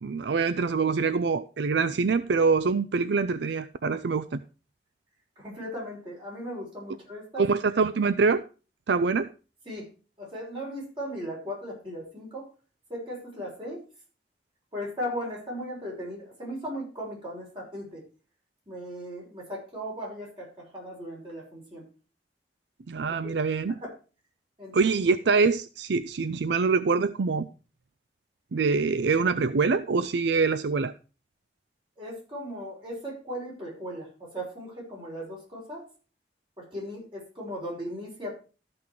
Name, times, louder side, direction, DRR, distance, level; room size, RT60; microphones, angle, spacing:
voice 1, 0.0-4.4 7.4-8.4 8.9-9.3 22.9-23.7 24.7-27.5 28.5-30.9, right 4 dB, 75° right, 13 dB, 0.5 m, -24 dB
voice 2, 5.4-7.4 9.7-9.9 10.2-12.5 12.9-13.8 14.7-18.0 18.7-21.8 23.2-23.4 23.7-23.9 24.6-24.9 32.0-35.9 36.6-38.3, equal, 30° right, -3 dB, 5.6 m, -37 dB
13.5 x 6.1 x 4.6 m, 0.35 s
head